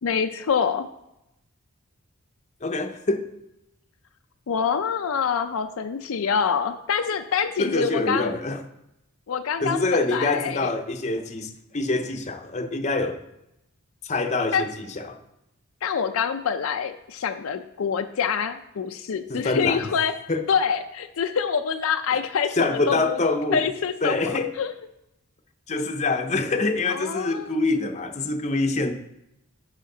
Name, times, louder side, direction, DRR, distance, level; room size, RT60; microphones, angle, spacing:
voice 1, 0.0-0.9 4.5-8.3 9.3-10.7 14.5-14.7 15.8-20.1 20.5-23.2 23.5-24.7 26.9-27.6, left 6 dB, 70° left, 7 dB, 0.4 m, -26 dB
voice 2, 2.6-3.3 7.6-8.6 9.6-13.2 14.0-15.2 19.3-19.9 20.3-20.4 22.5-23.7 24.0-24.5 25.7-28.9, left 3 dB, 30° left, 6 dB, 0.6 m, -25 dB
10.5 x 5.0 x 3.8 m, 0.87 s
head